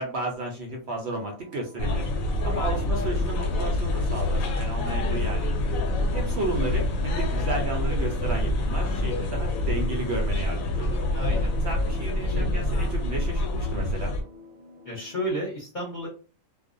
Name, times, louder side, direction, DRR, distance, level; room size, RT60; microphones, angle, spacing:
voice 1, 0.0-2.1 2.4-5.5 6.1-11.0 11.6-14.2, right 2 dB, 65° right, 0 dB, 0.8 m, -33 dB
sound 1, 1.0-15.3, left 2 dB, 30° right, 0.7 m, -49 dB
sound 2, 1.8-14.2, left 1 dB, 85° left, 1.0 m, -26 dB
voice 2, 4.8-5.3 11.1-11.5 14.8-16.1, equal, 40° left, -5 dB, 0.9 m, -33 dB
2.4 x 2.1 x 2.5 m, 0.36 s
omnidirectional pair, 1.4 m